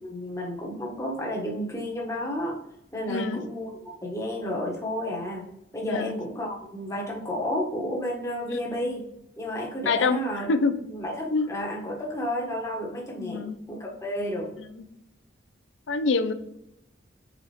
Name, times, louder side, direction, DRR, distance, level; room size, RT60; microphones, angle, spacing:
voice 1, 0.0-2.6 2.9-5.4 5.7-9.0 9.4-10.5 10.8-14.5, equal, 15° left, -2 dB, 1.1 m, -31 dB
voice 2, 3.1-3.4 5.9-6.2 8.5-8.6 9.9-10.2 10.5-10.7 11.3-11.5 13.2-13.6 14.6-14.8 15.9-16.3, left 4 dB, 80° left, 10 dB, 0.5 m, -26 dB
4.2 x 3.9 x 3.2 m, 0.82 s
head